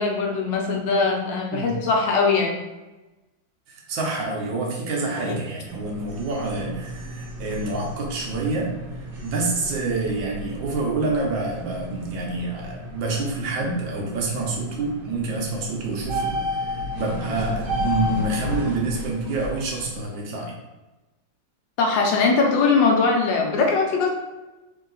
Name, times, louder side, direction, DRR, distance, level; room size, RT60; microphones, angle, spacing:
voice 1, 0.0-2.5 5.2-5.4 21.8-24.1, left 4 dB, 80° left, 0 dB, 1.5 m, -21 dB
voice 2, 3.7-8.7 9.0-20.6, right 3 dB, 90° right, -1 dB, 1.6 m, -27 dB
sound 1, 5.6-20.0, equal, 65° right, 1.4 m, -33 dB
3.9 x 2.7 x 3.9 m, 1.1 s
omnidirectional pair, 2.0 m